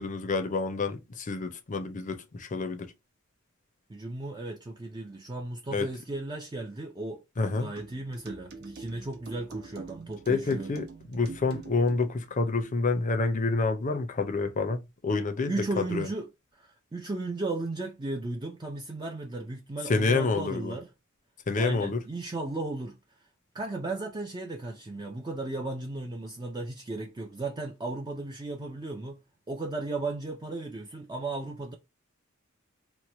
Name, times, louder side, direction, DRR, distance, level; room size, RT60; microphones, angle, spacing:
voice 1, 0.0-2.9 5.7-5.9 7.4-7.7 10.3-16.1 19.9-20.8 21.5-22.0, left 3 dB, 40° left, 0.5 m, -28 dB
voice 2, 3.9-7.2 7.5-10.8 15.5-20.9 21.6-23.0 23.5-29.2 29.5-31.7, right 2 dB, 20° right, 0.4 m, -35 dB
sound 1, 7.8-12.0, right 4 dB, 55° right, 0.7 m, -44 dB
3.0 x 2.1 x 4.0 m
head